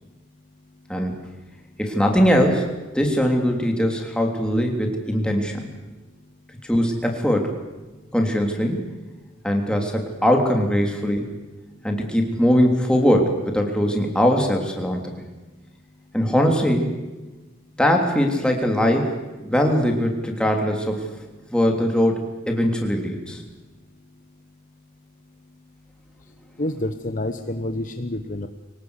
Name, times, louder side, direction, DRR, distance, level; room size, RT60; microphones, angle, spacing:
voice 1, 0.9-1.2 1.8-5.7 6.6-7.5 8.1-8.9 9.4-11.3 11.8-15.1 16.1-16.9 17.8-19.2 19.4-21.1 21.5-22.2 22.5-23.4, equal, 5° left, 2 dB, 3.2 m, -21 dB
voice 2, 26.6-28.5, left 1 dB, 40° left, 8 dB, 1.1 m, -28 dB
24.0 x 18.5 x 8.2 m, 1.2 s
head